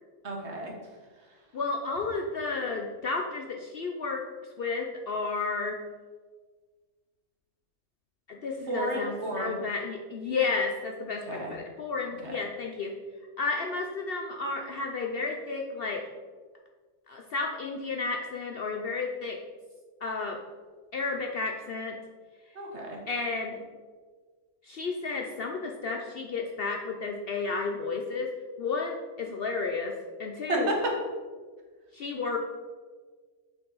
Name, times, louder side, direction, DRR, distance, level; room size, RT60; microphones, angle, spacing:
voice 1, 0.2-0.7 8.7-9.5 11.3-11.5 12.2-12.4 22.5-23.0 30.5-30.6, right 2 dB, 55° right, 0 dB, 1.5 m, -33 dB
voice 2, 1.5-4.2 4.6-5.8 8.3-12.9 13.4-16.0 17.1-19.4 20.0-20.4 20.9-22.0 23.1-23.6 24.6-28.3 28.6-29.9 30.2-30.7 31.9-32.4, left 4 dB, 60° left, 2 dB, 0.7 m, -32 dB
7.3 x 5.6 x 3.9 m, 1.5 s
omnidirectional pair, 1.4 m